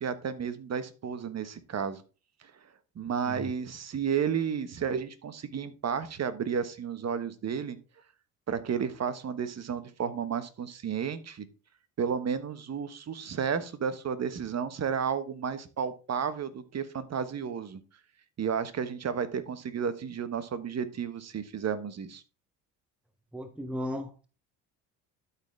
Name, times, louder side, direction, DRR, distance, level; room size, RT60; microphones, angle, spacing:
voice 1, 0.0-2.0 2.4-2.5 2.9-7.8 8.5-11.4 12.0-17.8 18.4-22.2, right 7 dB, 40° right, 1.2 m, -32 dB
voice 2, 23.3-24.3, left 1 dB, 5° right, 1.1 m, -36 dB
12.5 x 4.2 x 3.4 m
hypercardioid pair, 65°, 42 cm